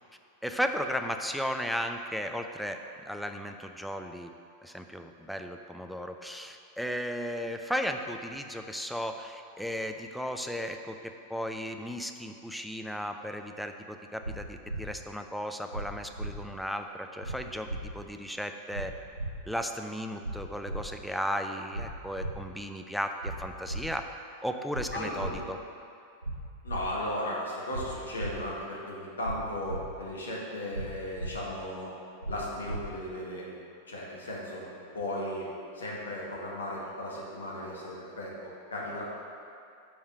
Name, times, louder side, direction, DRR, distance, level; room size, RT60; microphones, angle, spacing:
voice 1, 0.4-2.8 3.1-4.3 4.6-18.9 19.5-24.0 24.4-25.6, equal, ahead, 5 dB, 0.4 m, -35 dB
sound 1, 14.2-14.3 14.7-14.8 15.7-15.8 16.2-16.3 17.2-17.4 17.7-17.8 18.7-18.8 19.2-19.3 20.2-20.3 20.7-20.8 21.7-21.9 22.2-22.3 23.2-23.3 23.7-23.8 24.7-24.9 25.2-25.3 26.2-26.3 26.7-26.8 27.7-27.8 28.2-28.3 29.2-29.4 29.7-29.8 30.7-30.9 31.2-31.3 32.2-32.4 32.7-32.8, right 2 dB, 85° right, 0.4 m, -35 dB
voice 2, 24.9-25.5 26.6-31.9 32.3-33.6 33.9-35.5 35.7-39.0, left 1 dB, 70° left, -4 dB, 1.4 m, -36 dB
5.1 x 4.9 x 5.3 m, 2.5 s
figure-of-eight pair, 90°, 0 cm